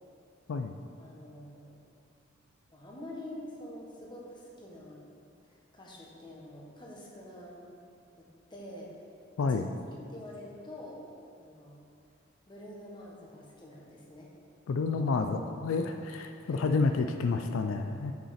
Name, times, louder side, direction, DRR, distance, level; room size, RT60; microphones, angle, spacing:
voice 1, 1.0-1.8 2.7-5.0 5.5-7.7 8.5-8.9 9.5-9.6 9.9-11.0 11.4-11.8 12.5-14.3 16.5-16.7, left 1 dB, 25° left, -3 dB, 1.2 m, -46 dB
voice 2, 14.7-18.1, left 4 dB, 80° left, 6 dB, 0.4 m, -29 dB
7.3 x 6.0 x 4.2 m, 2.5 s
head